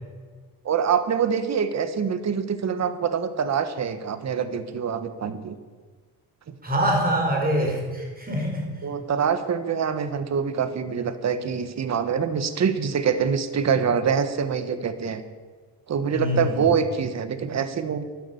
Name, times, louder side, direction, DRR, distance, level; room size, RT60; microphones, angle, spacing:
voice 1, 0.6-5.6 6.5-6.6 8.8-15.2 15.9-18.0, right 7 dB, 40° right, 11 dB, 1.3 m, -25 dB
voice 2, 6.6-8.7 16.1-16.7, equal, 20° right, 0 dB, 4.9 m, -24 dB
12.0 x 11.5 x 8.3 m, 1.5 s
cardioid pair, 115°, 40 cm